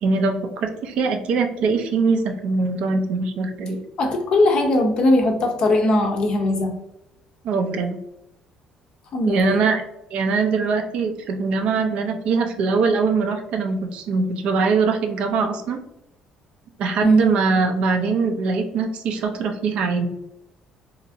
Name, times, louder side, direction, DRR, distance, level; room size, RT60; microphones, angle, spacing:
voice 1, 0.0-3.8 7.4-8.0 9.3-9.8 10.1-15.8 16.8-20.1, right 4 dB, 60° right, 5 dB, 0.4 m, -22 dB
voice 2, 4.0-6.8 9.1-9.6 17.0-17.2, left 1 dB, 40° left, 3 dB, 0.5 m, -19 dB
2.8 x 2.4 x 2.5 m, 0.83 s
cardioid pair, 155°, 2 cm